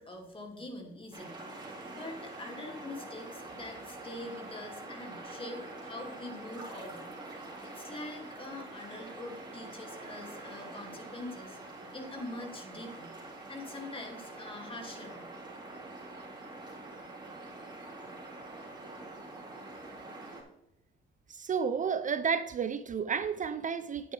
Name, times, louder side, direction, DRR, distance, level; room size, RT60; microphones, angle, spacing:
voice 1, 0.0-11.6 11.9-13.1 13.5-15.3, left 2 dB, 25° left, 2.5 m, -44 dB
sound 1, 1.1-20.4, right 2 dB, 20° right, 4.0 m, -45 dB
voice 2, 21.3-24.1, right 6 dB, 40° right, 0.6 m, -31 dB
10.5 x 8.7 x 3.4 m
cardioid pair, 90°, 20 cm